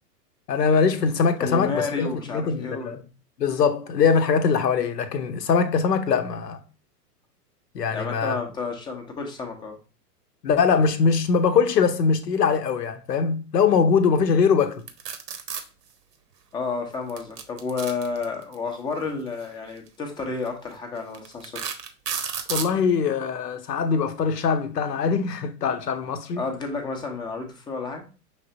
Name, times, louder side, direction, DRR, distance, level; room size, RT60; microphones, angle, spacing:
voice 1, 0.5-3.0 3.4-6.6 7.7-8.4 10.4-14.8 22.5-26.4, left 5 dB, 80° left, 0.8 m, -22 dB
voice 2, 1.4-3.0 7.9-9.8 16.5-21.6 26.4-28.0, left 4 dB, 10° left, 0.5 m, -31 dB
sound 1, 14.9-15.6 17.1-18.5 19.7-19.9 20.5-20.6 21.1-22.7, right 7 dB, 80° right, 0.8 m, -31 dB
5.6 x 3.3 x 2.6 m
figure-of-eight pair, 100°, 48 cm